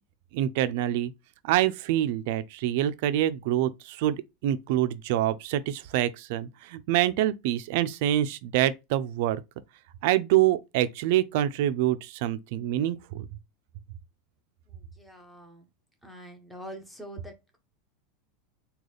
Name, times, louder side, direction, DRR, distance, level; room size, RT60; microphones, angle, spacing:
voice 1, 0.3-1.1 1.4-9.4 10.0-13.3, right 13 dB, 65° right, 0.4 m, -26 dB
voice 2, 14.7-15.7 16.0-17.6, equal, ahead, 1.0 m, -45 dB
3.9 x 2.4 x 3.2 m
supercardioid pair, 140°, 0 cm